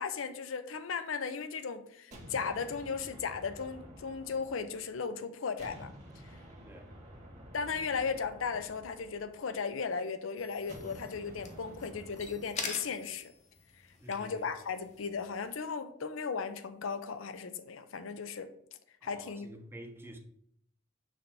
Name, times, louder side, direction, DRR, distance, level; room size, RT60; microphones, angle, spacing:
voice 1, 0.0-5.9 7.5-13.3 14.1-18.5 19.0-19.5, left 5 dB, 75° left, 0.6 m, -36 dB
sound 1, 2.1-5.1 5.6-9.8 10.7-12.8, equal, 40° right, 1.5 m, -51 dB
voice 2, 6.6-7.0 14.0-14.5 19.0-20.2, right 1 dB, 10° right, 0.8 m, -49 dB
sound 2, 10.4-15.5, left 5 dB, 35° left, 0.8 m, -45 dB
6.3 x 3.3 x 5.6 m
head